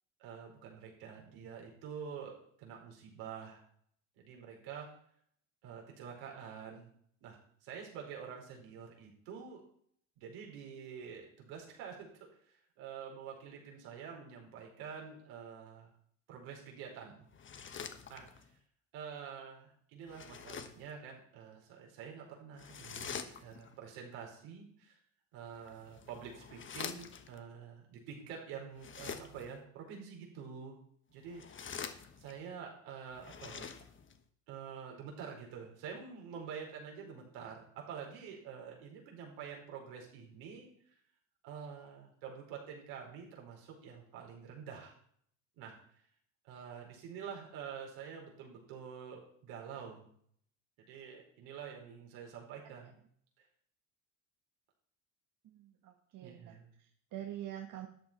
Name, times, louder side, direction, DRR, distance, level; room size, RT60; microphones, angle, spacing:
voice 1, 0.2-3.6 4.2-4.9 5.6-6.9 7.2-9.6 10.2-12.1 12.4-15.9 16.3-17.3 18.1-18.3 18.9-25.0 25.3-30.8 31.1-31.4 32.2-33.8 34.5-40.7 41.4-44.9 45.6-45.7 46.5-50.1 50.8-52.9 56.2-56.7, right 7 dB, 70° right, -1 dB, 5.0 m, -47 dB
sound 1, 17.3-18.5 20.0-20.9 22.6-23.7 25.5-27.4 28.7-29.6 31.2-32.5 33.1-34.2, left 7 dB, 30° left, 1.3 m, -46 dB
voice 2, 55.4-57.9, right 12 dB, 50° right, 4 dB, 1.6 m, -46 dB
13.0 x 8.4 x 4.6 m, 0.64 s
supercardioid pair, 90°, 39 cm